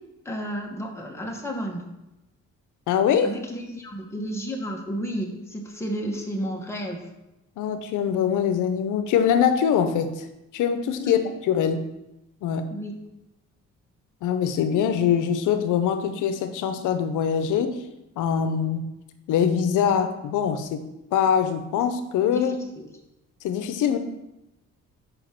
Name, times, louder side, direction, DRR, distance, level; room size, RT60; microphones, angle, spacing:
voice 1, 0.2-1.8 3.2-7.1 11.0-11.2 12.7-13.0 22.3-22.9, equal, 10° left, 0 dB, 1.4 m, -32 dB
voice 2, 2.9-3.3 7.6-10.2 10.5-11.2 11.5-11.9 12.4-12.7 14.2-17.8 18.2-18.9 19.3-20.8 21.1-22.6 23.4-24.0, left 8 dB, 85° left, 9 dB, 0.8 m, -23 dB
5.0 x 4.9 x 5.9 m, 0.93 s
cardioid pair, 90°, 30 cm